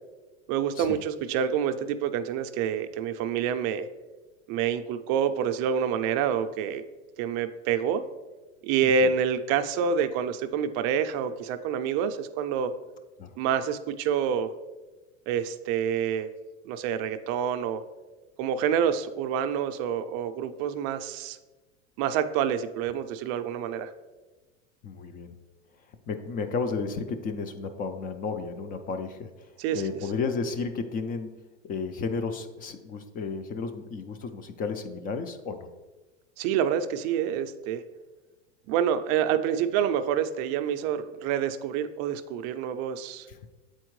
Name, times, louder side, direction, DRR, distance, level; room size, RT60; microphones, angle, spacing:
voice 1, 0.5-3.9 4.5-6.8 7.2-8.0 8.6-12.7 13.4-14.5 15.3-16.3 16.6-17.8 18.4-21.4 22.0-23.9 29.6-29.8 36.4-37.8 38.7-43.3, right 8 dB, 45° right, 10 dB, 0.4 m, -27 dB
voice 2, 24.8-25.3 26.1-29.3 29.7-31.3 31.7-35.7 43.3-43.4, left 4 dB, 25° left, 8 dB, 0.3 m, -33 dB
7.6 x 4.4 x 3.1 m, 1.2 s
hypercardioid pair, 115°, 37 cm